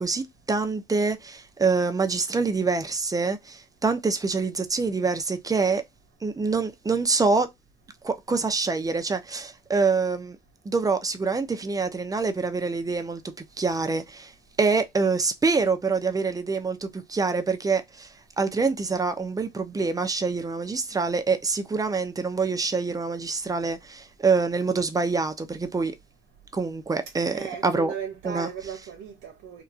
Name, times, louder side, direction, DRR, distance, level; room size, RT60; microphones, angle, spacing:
voice 1, 0.0-5.8 6.2-7.5 8.0-10.4 10.6-14.3 14.6-25.9 26.5-27.9 28.2-28.5, right 4 dB, 20° right, 0.6 m, -26 dB
voice 2, 27.3-29.6, right 7 dB, 80° right, 0.7 m, -36 dB
2.8 x 2.3 x 2.4 m
cardioid pair, 90°, 20 cm